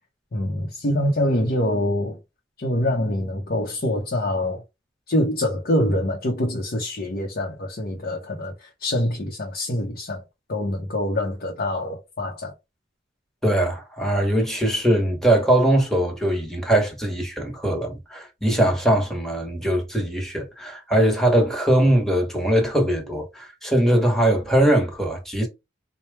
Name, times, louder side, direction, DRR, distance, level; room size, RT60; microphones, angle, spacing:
voice 1, 0.3-2.2 2.6-4.6 5.1-10.2 10.5-12.5, left 1 dB, 55° left, 0.8 m, -25 dB
voice 2, 13.4-25.5, right 1 dB, ahead, 1.1 m, -21 dB
4.3 x 2.2 x 3.3 m
head